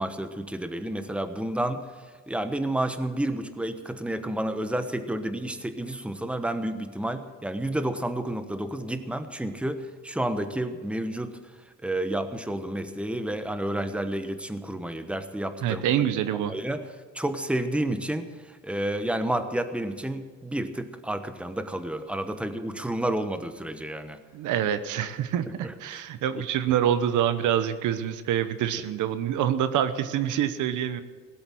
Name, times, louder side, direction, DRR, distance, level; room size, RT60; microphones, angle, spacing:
voice 1, 0.0-1.8 2.3-11.3 11.8-15.8 16.4-16.8 17.1-18.3 18.6-24.2 25.6-26.0, right 1 dB, 5° right, 9 dB, 1.1 m, -30 dB
voice 2, 15.6-16.5 24.3-31.0, right 10 dB, 85° right, 12 dB, 0.9 m, -26 dB
17.5 x 8.1 x 7.6 m, 1.4 s
cardioid pair, 90°, 30 cm